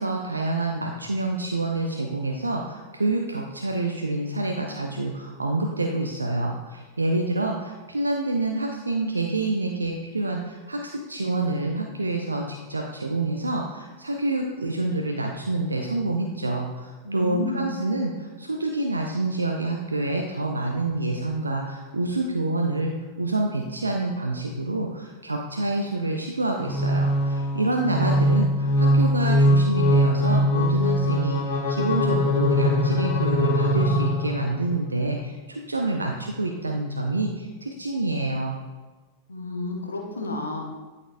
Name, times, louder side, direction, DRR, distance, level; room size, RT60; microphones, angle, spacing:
voice 1, 0.0-22.9 23.2-38.6, right 2 dB, 80° right, 1 dB, 0.5 m, -27 dB
voice 2, 17.0-17.7 39.3-40.7, left 2 dB, 75° left, 0 dB, 0.9 m, -31 dB
sound 1, 26.6-34.6, equal, 50° left, 1.4 m, -21 dB
11.0 x 4.2 x 2.5 m, 1.3 s
figure-of-eight pair, 90°, 0 cm